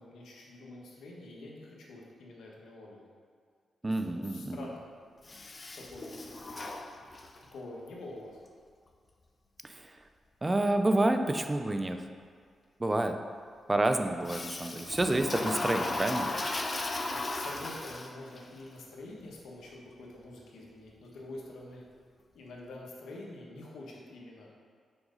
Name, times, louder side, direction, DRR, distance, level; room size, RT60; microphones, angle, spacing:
voice 1, 0.0-3.0 3.8-4.8 5.7-6.7 7.5-8.4 17.1-21.8 22.3-24.5, left 2 dB, 85° left, -2 dB, 1.2 m, -46 dB
voice 2, 3.8-4.7 9.6-9.9 10.4-12.0 12.8-13.1 13.7-16.4, right 2 dB, 25° right, 7 dB, 0.5 m, -29 dB
Toilet flush, 5.2-7.5 14.2-18.4, left 2 dB, 35° left, 0.7 m, -36 dB
5.9 x 5.2 x 3.9 m, 2.1 s
cardioid pair, 60°, 0 cm